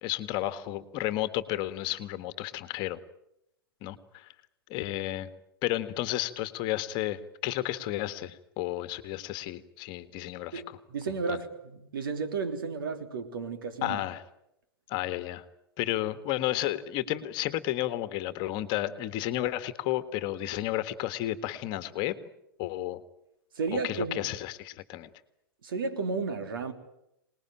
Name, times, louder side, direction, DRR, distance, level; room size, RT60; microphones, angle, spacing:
voice 1, 0.0-3.0 3.8-4.3 4.7-5.3 5.6-10.8 11.3-11.4 13.8-14.2 14.9-15.4 15.8-22.1 22.6-23.0 23.7-25.1, left 14 dB, 40° left, 1.7 m, -32 dB
voice 2, 10.5-14.0 23.5-24.3 25.6-26.7, right 4 dB, 65° right, 3.3 m, -33 dB
26.0 x 20.0 x 9.0 m
figure-of-eight pair, 105°, 12 cm